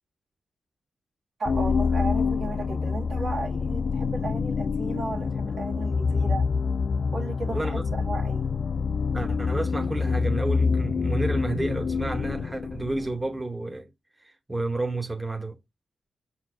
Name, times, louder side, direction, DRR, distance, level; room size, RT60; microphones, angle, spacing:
sound 1, 1.4-13.3, left 5 dB, 55° left, 0.3 m, -26 dB
voice 1, 1.4-6.5 7.1-8.5, right 3 dB, 65° right, 1.6 m, -35 dB
voice 2, 7.5-7.9 9.1-13.9 14.2-15.6, right 2 dB, 20° right, 0.8 m, -31 dB
4.5 x 3.8 x 2.4 m
supercardioid pair, 50°, 0 cm